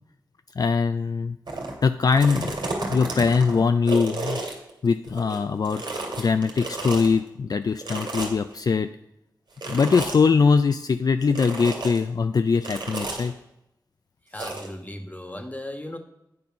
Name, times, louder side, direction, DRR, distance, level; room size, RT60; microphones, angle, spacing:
voice 1, 0.6-1.4 1.8-2.6 2.9-4.4 4.8-5.8 6.2-8.9 9.7-13.3, left 5 dB, 55° left, 9 dB, 0.4 m, -22 dB
sound 1, 1.5-1.7 2.1-5.4 5.6-7.1 7.8-8.5 9.6-10.2 11.3-12.0 12.6-13.3 14.3-14.7, right 2 dB, 85° right, 2.2 m, -32 dB
voice 2, 14.3-16.0, left 1 dB, 20° left, 5 dB, 1.4 m, -36 dB
9.5 x 5.4 x 5.1 m, 0.83 s
cardioid pair, 50°, 8 cm